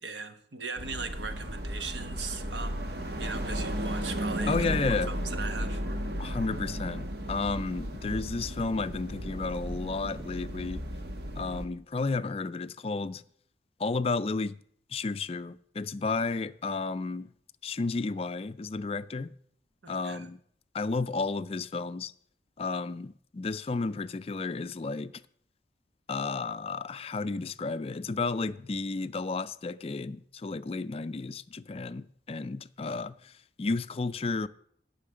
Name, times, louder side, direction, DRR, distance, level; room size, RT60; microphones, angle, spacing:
voice 1, 0.0-4.7 5.1-5.8 19.8-20.3, right 4 dB, 85° right, 1.1 m, -39 dB
sound 1, 0.8-11.7, equal, 65° right, 1.2 m, -34 dB
voice 2, 4.5-5.1 6.2-10.8 11.4-13.2 13.8-14.6 14.9-17.3 17.6-19.3 19.9-20.4 20.7-22.1 22.6-25.1 26.1-33.3 33.6-34.5, left 3 dB, 35° left, 0.4 m, -32 dB
10.0 x 5.8 x 8.6 m
head